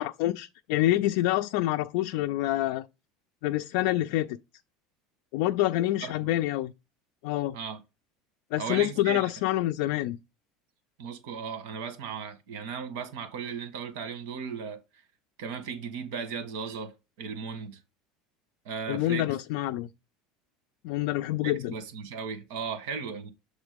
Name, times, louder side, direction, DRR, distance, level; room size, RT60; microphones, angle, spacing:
voice 1, 0.0-2.8 3.4-4.4 5.3-6.7 7.2-7.6 8.5-10.2 18.9-19.9 20.8-21.7, left 15 dB, 70° left, 0.3 m, -27 dB
voice 2, 6.0-6.3 7.5-7.8 8.6-9.3 11.0-14.8 15.4-17.8 18.6-19.3 21.4-23.3, right 6 dB, 75° right, 1.4 m, -36 dB
7.1 x 3.7 x 5.1 m
cardioid pair, 160°, 0 cm